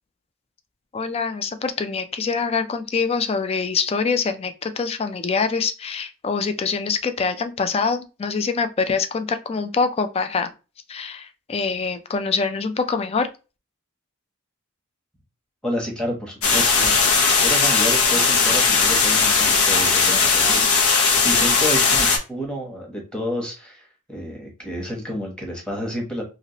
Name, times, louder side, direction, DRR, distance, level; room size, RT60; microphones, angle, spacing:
voice 1, 0.9-10.5 10.9-13.3, left 5 dB, 30° left, 8 dB, 0.3 m, -24 dB
voice 2, 15.6-26.2, equal, 5° left, 0 dB, 0.9 m, -30 dB
sound 1, 16.4-22.2, left 5 dB, 80° left, 0.8 m, -18 dB
3.0 x 2.9 x 2.8 m, 0.30 s
head